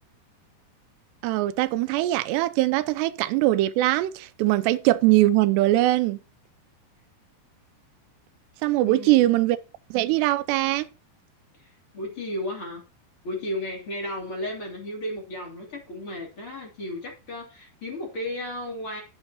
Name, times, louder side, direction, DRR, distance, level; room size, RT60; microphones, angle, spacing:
voice 1, 1.2-6.2 8.6-9.6 9.9-10.9, right 16 dB, 85° right, 2.7 m, -21 dB
voice 2, 8.9-9.4 11.6-12.8 13.2-19.0, left 1 dB, 35° left, 3.4 m, -34 dB
12.0 x 8.0 x 2.9 m
omnidirectional pair, 4.8 m